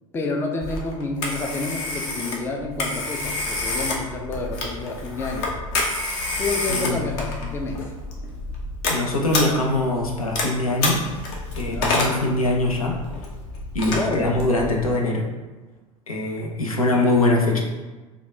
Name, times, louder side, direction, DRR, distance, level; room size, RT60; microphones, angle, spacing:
voice 1, 0.1-5.5 6.4-7.9 11.6-11.9 13.9-14.4, left 3 dB, 15° left, 2 dB, 0.4 m, -29 dB
Telephone, 0.6-14.9, left 2 dB, 50° left, 0.8 m, -29 dB
voice 2, 6.7-7.1 8.9-11.0 11.5-12.9 13.7-15.2 16.1-17.6, left 2 dB, 80° left, 0 dB, 0.6 m, -22 dB
3.4 x 2.3 x 3.4 m, 1.2 s
figure-of-eight pair, 80°, 18 cm